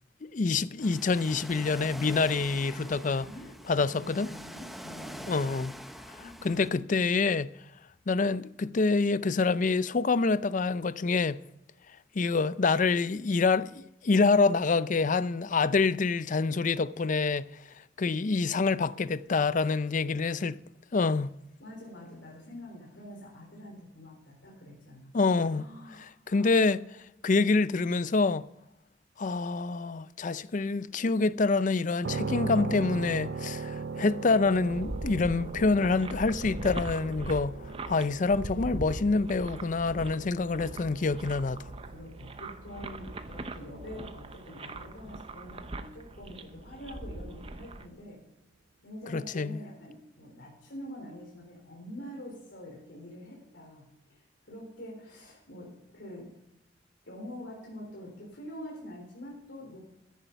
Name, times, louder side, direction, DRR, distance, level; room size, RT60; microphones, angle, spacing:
voice 1, 0.2-3.3 3.7-4.3 5.3-5.7 6.4-7.5 8.1-11.4 12.2-17.5 18.0-20.6 20.9-21.3 25.1-25.6 26.3-26.8 27.2-28.4 29.2-41.6 49.1-49.6, left 4 dB, 45° left, 0.5 m, -26 dB
Ocean, 0.8-6.7, equal, ahead, 0.8 m, -44 dB
voice 2, 3.2-5.3 6.2-6.4 19.6-19.8 21.6-25.1 25.4-26.6 41.8-48.2 48.8-56.3 57.1-59.8, left 1 dB, 75° left, 3.7 m, -45 dB
sound 1, 32.0-45.8, right 4 dB, 60° right, 0.5 m, -40 dB
sound 2, 34.5-47.9, right 2 dB, 30° right, 0.8 m, -41 dB
14.5 x 10.0 x 5.7 m
head